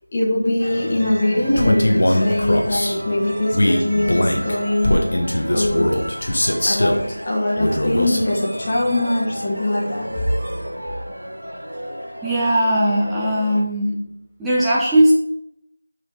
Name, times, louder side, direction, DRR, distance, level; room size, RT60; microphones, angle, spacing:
voice 1, 0.1-5.0 5.5-5.8 6.7-10.1, left 1 dB, 20° left, -5 dB, 1.5 m, -21 dB
sound 1, 0.6-13.6, equal, 70° right, 3.1 m, -32 dB
Male speech man speaking, 1.6-2.9 3.5-7.0 7.6-8.3, left 1 dB, 50° left, 1.4 m, -20 dB
voice 2, 12.2-14.0 14.4-15.1, right 1 dB, 5° right, -8 dB, 0.7 m, -18 dB
6.2 x 6.2 x 5.1 m, 0.75 s
figure-of-eight pair, 170°, 0 cm